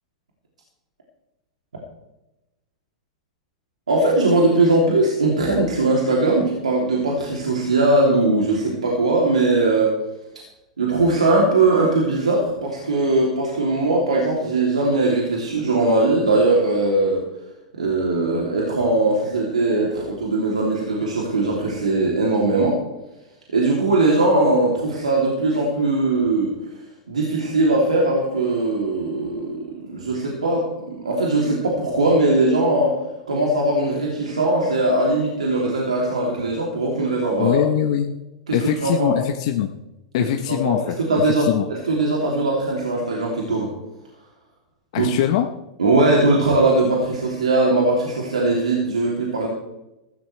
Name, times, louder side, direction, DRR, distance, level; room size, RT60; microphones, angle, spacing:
voice 1, 3.9-9.9 10.8-17.2 17.8-22.8 23.5-26.5 27.1-32.9 33.3-37.6 38.5-39.1 40.5-43.7 45.0-45.1 45.8-49.5, right 2 dB, 90° right, -2 dB, 3.0 m, -20 dB
voice 2, 37.4-38.1 38.5-39.7 40.1-40.8 41.4-41.7 44.9-45.5, left 11 dB, 60° left, 5 dB, 0.9 m, -21 dB
15.5 x 14.5 x 3.4 m, 0.96 s
hypercardioid pair, 105°, 4 cm